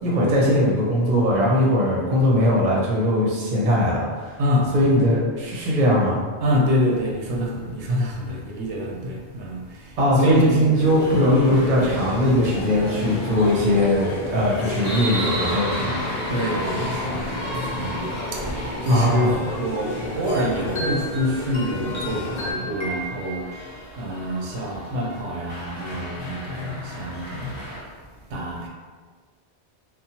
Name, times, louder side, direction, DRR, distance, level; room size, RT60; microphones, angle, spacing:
voice 1, 0.0-4.3 4.7-6.2 10.0-16.0 18.9-19.4, equal, 45° right, -4 dB, 0.7 m, -20 dB
voice 2, 4.4-4.9 6.4-10.8 16.3-27.9 28.3-28.7, equal, 90° right, -2 dB, 0.9 m, -26 dB
sound 1, 10.8-22.5, left 2 dB, 65° left, 0.7 m, -31 dB
sound 2, 10.9-27.8, equal, 20° left, 0.9 m, -35 dB
sound 3, 20.4-23.9, left 1 dB, 40° left, 0.4 m, -34 dB
2.9 x 2.0 x 2.7 m, 1.5 s
omnidirectional pair, 1.1 m